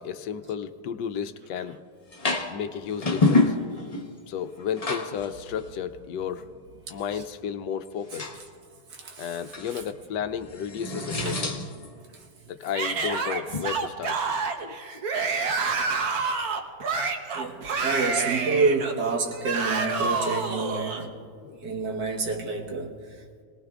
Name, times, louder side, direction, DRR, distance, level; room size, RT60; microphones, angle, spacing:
voice 1, 0.0-1.8 2.5-3.6 4.3-6.5 6.9-8.3 9.2-11.6 12.5-14.2 14.6-14.8 21.4-21.6, left 8 dB, 85° left, 1.3 m, -33 dB
sound 1, 2.1-2.5 2.9-4.2 4.6-5.3 5.6-5.7 8.1-8.4 9.4-9.8 10.2-11.9 13.5-13.7, left 3 dB, 30° left, 0.8 m, -27 dB
voice 2, 6.9-7.2 8.9-9.4 9.7-9.8 11.3-11.4 12.1-12.3 14.9-15.0 17.3-21.2 21.6-23.4, right 3 dB, 75° right, 2.0 m, -29 dB
Yell / Screaming, 12.7-21.0, right 4 dB, 60° right, 1.5 m, -28 dB
27.5 x 19.0 x 2.4 m
omnidirectional pair, 1.8 m